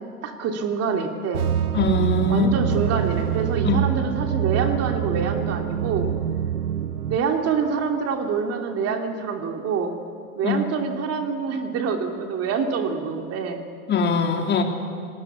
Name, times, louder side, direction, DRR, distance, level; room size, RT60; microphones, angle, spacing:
voice 1, 0.0-1.6 2.3-6.1 7.1-10.0 10.4-13.6, right 5 dB, 35° right, 4 dB, 2.7 m, -26 dB
sound 1, 1.3-7.2, right 9 dB, 85° right, 1.1 m, -25 dB
voice 2, 1.7-2.5 3.6-3.8 10.4-10.6 13.9-14.6, left 3 dB, 25° left, 3 dB, 3.2 m, -21 dB
29.0 x 19.5 x 8.5 m, 2.2 s
hypercardioid pair, 100°, 44 cm